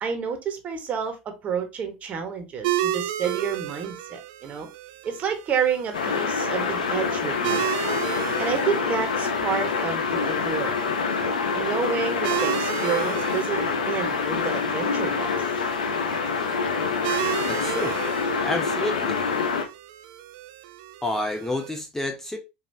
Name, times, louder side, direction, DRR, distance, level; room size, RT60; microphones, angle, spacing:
voice 1, 0.0-4.7 5.0-7.6 8.4-10.8 11.5-15.3, right 6 dB, 35° right, 1.2 m, -29 dB
sound 1, 2.6-21.8, right 13 dB, 70° right, 0.5 m, -34 dB
sound 2, 5.9-19.7, left 5 dB, 90° left, 0.7 m, -26 dB
voice 2, 17.4-18.0 18.4-19.3 21.0-22.4, left 1 dB, 10° left, 0.6 m, -29 dB
5.2 x 2.7 x 2.7 m
hypercardioid pair, 95°, 4 cm